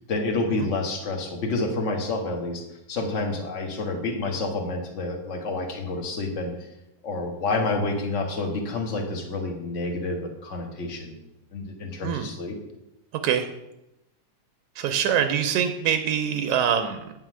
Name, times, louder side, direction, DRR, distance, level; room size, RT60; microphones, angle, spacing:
voice 1, 0.1-2.6 2.9-6.7 7.0-11.2 11.5-12.6, left 3 dB, 40° left, 3 dB, 1.2 m, -29 dB
voice 2, 14.8-17.1, right 8 dB, 80° right, 7 dB, 2.0 m, -24 dB
9.2 x 5.7 x 6.2 m, 0.89 s
omnidirectional pair, 3.4 m